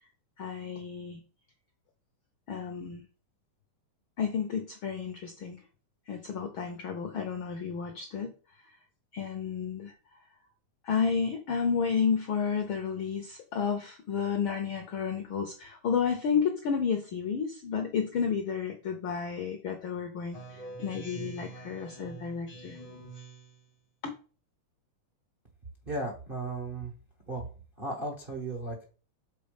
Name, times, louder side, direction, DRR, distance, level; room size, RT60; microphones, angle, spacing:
voice 1, 0.4-1.2 2.5-3.0 4.2-5.6 6.1-8.3 9.1-9.9 10.8-22.8 24.0-24.1, left 6 dB, 80° left, 5 dB, 1.1 m, -31 dB
Speech synthesizer, 20.3-23.7, right 3 dB, 45° left, 0.4 m, -45 dB
voice 2, 25.9-26.9 27.3-27.4 27.8-28.8, right 2 dB, 75° right, 1 dB, 0.5 m, -35 dB
6.7 x 4.1 x 5.2 m, 0.37 s
omnidirectional pair, 3.3 m